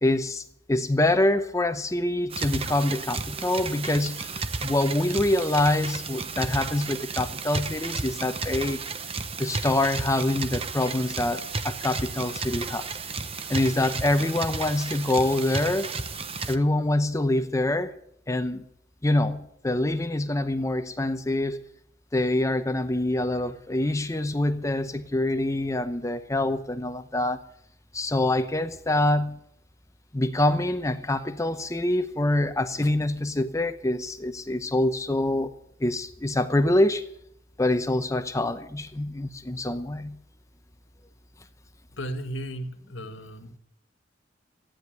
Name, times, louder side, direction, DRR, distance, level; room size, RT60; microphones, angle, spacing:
voice 1, 0.0-8.8 9.4-12.9 13.5-15.9 16.5-17.9 18.3-18.6 19.0-21.6 22.1-27.4 27.9-29.4 30.1-35.5 35.8-37.1 37.6-40.2, left 1 dB, 15° left, 0.8 m, -25 dB
sound 1, 2.3-16.6, right 4 dB, 30° right, 0.9 m, -33 dB
voice 2, 41.9-43.6, right 1 dB, 80° left, 1.9 m, -35 dB
15.0 x 10.0 x 9.2 m
head